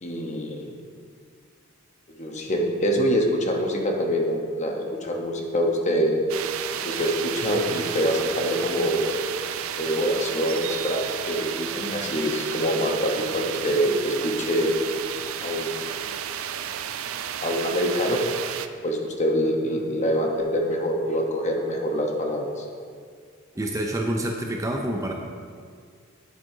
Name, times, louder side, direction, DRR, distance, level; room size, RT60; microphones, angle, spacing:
voice 1, 0.0-0.7 2.1-6.2 6.8-9.1 9.8-14.7 15.4-16.0 17.4-18.3 18.8-22.7, equal, 35° left, 1 dB, 0.9 m, -25 dB
sound 1, 6.3-18.7, right 9 dB, 80° right, 0.4 m, -32 dB
voice 2, 23.6-25.1, right 1 dB, 15° right, 1 dB, 0.4 m, -27 dB
11.0 x 7.4 x 2.7 m, 2.1 s
head